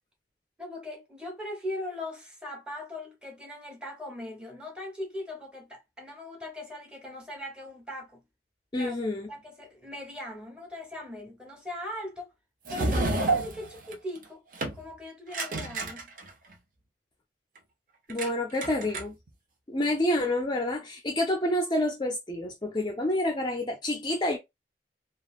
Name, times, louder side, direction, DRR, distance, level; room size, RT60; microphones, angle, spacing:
voice 1, 0.6-8.2 8.7-9.0 9.3-12.3 12.7-14.4 14.7-16.1, left 1 dB, 5° right, 1.0 m, -39 dB
voice 2, 8.7-9.3 18.1-19.1 19.7-24.4, left 1 dB, 25° left, 0.5 m, -28 dB
sound 1, 12.6-14.2 14.5-14.8 15.3-16.5 18.1-18.3 18.5-19.3, right 2 dB, 50° right, 0.8 m, -29 dB
3.2 x 2.4 x 2.4 m
head